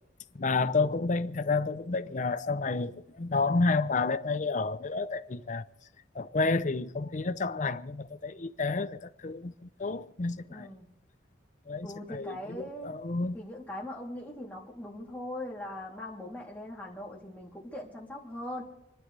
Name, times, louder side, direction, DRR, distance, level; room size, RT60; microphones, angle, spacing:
voice 1, 0.3-5.7 6.1-10.7 11.7-13.4, left 3 dB, 40° left, 0.6 m, -30 dB
voice 2, 10.5-10.9 11.8-12.9 13.3-18.6, left 1 dB, 10° left, 3.1 m, -40 dB
29.0 x 11.0 x 3.4 m
head